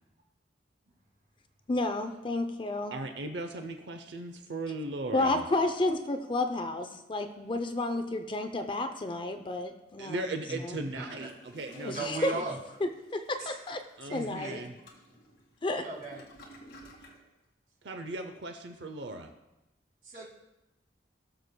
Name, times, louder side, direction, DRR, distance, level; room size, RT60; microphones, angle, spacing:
voice 1, 1.7-3.0 5.1-10.3 10.6-10.8 11.7-12.3 12.8-13.8 14.1-14.6 15.6-15.8, left 2 dB, 30° left, 7 dB, 0.5 m, -31 dB
voice 2, 2.9-5.4 10.0-12.1 12.3-12.4 14.0-14.8 17.8-19.3, right 2 dB, 75° right, 7 dB, 0.6 m, -37 dB
voice 3, 10.9-11.3 11.9-12.6 13.4-13.5 14.1-14.6 15.7-16.2 20.0-20.3, right 2 dB, 45° right, -1 dB, 1.9 m, -38 dB
Toilet flush, 11.1-17.2, equal, 65° left, 2.0 m, -55 dB
18.0 x 6.8 x 2.2 m, 0.97 s
head